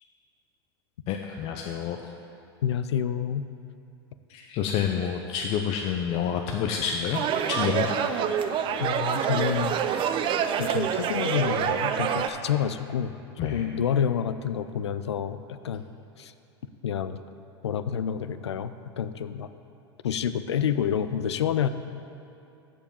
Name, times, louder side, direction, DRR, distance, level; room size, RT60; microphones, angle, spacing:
voice 1, 1.1-2.0 4.3-7.2 7.5-7.9 13.4-13.6, left 8 dB, 45° left, 2 dB, 0.6 m, -28 dB
voice 2, 2.6-3.5 8.8-10.1 10.6-13.1 13.4-15.9 16.2-16.3 16.8-17.2 17.6-19.5 20.0-21.7, left 8 dB, 90° left, 12 dB, 0.4 m, -28 dB
sound 1, 7.1-12.3, right 8 dB, 40° right, 0.6 m, -26 dB
7.5 x 6.8 x 7.0 m, 2.8 s
hypercardioid pair, 100°, 14 cm